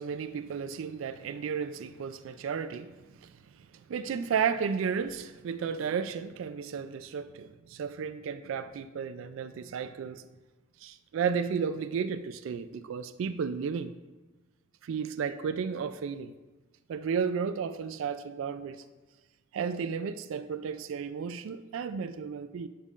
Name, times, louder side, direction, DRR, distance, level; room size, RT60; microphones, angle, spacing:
voice 1, 0.0-2.9 3.2-3.3 3.7-10.3 10.8-13.9 14.8-16.3 16.9-18.8 19.5-22.7, right 6 dB, 70° right, 0.3 m, -33 dB
10.0 x 5.5 x 2.4 m
head